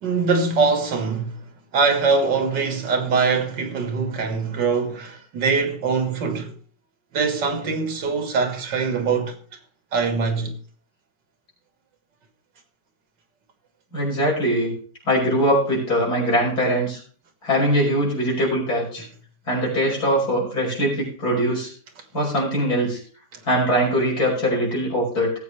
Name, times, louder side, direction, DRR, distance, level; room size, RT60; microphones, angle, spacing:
voice 1, 0.0-1.4 1.7-6.5 7.1-9.4 9.9-10.6, right 4 dB, 80° right, 2.3 m, -22 dB
voice 2, 13.9-14.7 15.1-17.0 17.4-19.0 19.5-21.7 22.1-23.0 23.5-25.3, equal, 60° left, 6.2 m, -22 dB
18.0 x 8.2 x 3.3 m
omnidirectional pair, 1.9 m